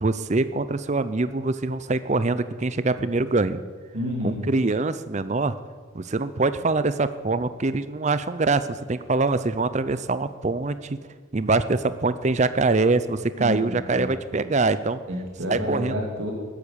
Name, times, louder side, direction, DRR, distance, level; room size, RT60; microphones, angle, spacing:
voice 1, 0.0-3.6 4.2-5.6 5.9-11.0 11.3-15.0 15.5-15.9, right 3 dB, 35° right, 13 dB, 0.5 m, -24 dB
voice 2, 3.9-4.5 13.4-14.1 15.1-16.3, equal, 65° right, -1 dB, 2.9 m, -30 dB
13.5 x 10.0 x 6.9 m, 1.5 s
head